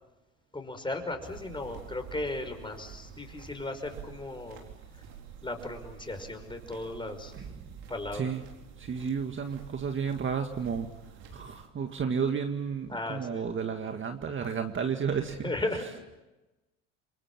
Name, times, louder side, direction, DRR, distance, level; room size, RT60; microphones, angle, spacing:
voice 1, 0.5-4.7 5.4-7.3 7.9-8.3 12.9-13.5 15.4-15.9, left 2 dB, 15° left, 6 dB, 5.4 m, -36 dB
sound 1, 1.2-11.7, right 8 dB, 75° right, 4.7 m, -49 dB
voice 2, 8.8-10.9 11.3-15.4, right 6 dB, 30° right, 5 dB, 2.0 m, -32 dB
28.5 x 23.0 x 7.3 m, 1.1 s
hypercardioid pair, 85°, 37 cm